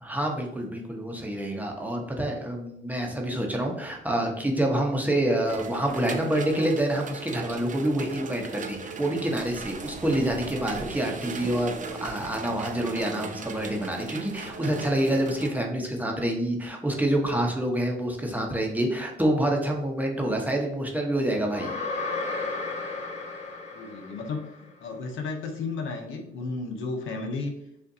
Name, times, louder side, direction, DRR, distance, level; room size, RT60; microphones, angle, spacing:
voice 1, 0.0-11.7 12.0-21.8, right 1 dB, 10° right, 1 dB, 0.9 m, -27 dB
sound 1, 5.5-15.5, right 4 dB, 40° right, 0.5 m, -38 dB
sound 2, 21.5-24.6, left 3 dB, 35° left, 1.4 m, -33 dB
voice 2, 23.7-27.5, left 3 dB, 75° left, 4 dB, 0.8 m, -33 dB
6.5 x 2.5 x 2.7 m, 0.79 s
cardioid pair, 90°, 20 cm